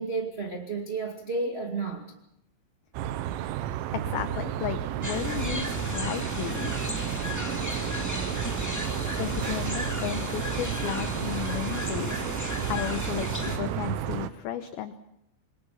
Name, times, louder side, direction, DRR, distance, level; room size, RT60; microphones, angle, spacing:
voice 1, 0.0-2.1, right 3 dB, 35° right, 1 dB, 0.9 m, -31 dB
sound 1, 2.9-14.3, right 11 dB, 90° right, 3.5 m, -32 dB
voice 2, 3.9-6.7 9.2-12.2 12.7-15.0, left 11 dB, 75° left, 9 dB, 2.3 m, -34 dB
sound 2, 5.0-13.6, left 1 dB, 10° left, 1.0 m, -34 dB
27.5 x 22.0 x 5.7 m, 0.80 s
omnidirectional pair, 5.5 m